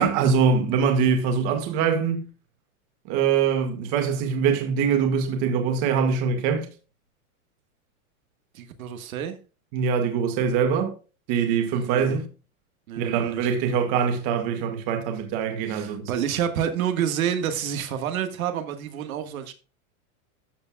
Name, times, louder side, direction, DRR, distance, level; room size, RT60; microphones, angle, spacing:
voice 1, 0.0-2.3 3.1-6.7 9.7-10.9 11.3-12.3 13.0-16.0, right 6 dB, 35° right, 2.0 m, -23 dB
voice 2, 8.5-9.4 11.7-12.2 12.9-13.5 15.7-19.5, right 9 dB, 70° right, 1.8 m, -28 dB
13.5 x 7.1 x 2.4 m
supercardioid pair, 170°, 43 cm